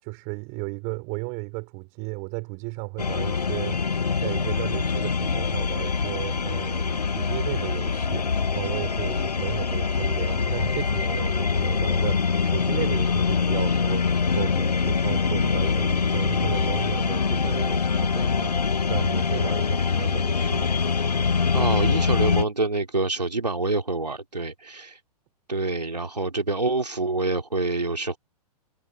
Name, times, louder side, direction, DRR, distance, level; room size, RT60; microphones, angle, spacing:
voice 1, 0.0-3.8 4.2-20.8, right 39 dB, 40° right, 4.9 m, -35 dB
sound 1, 3.0-22.4, left 5 dB, 80° left, 1.0 m, -24 dB
voice 2, 21.5-25.0 25.5-28.2, right 2 dB, 85° right, 2.7 m, -26 dB
figure-of-eight pair, 105°, 20 cm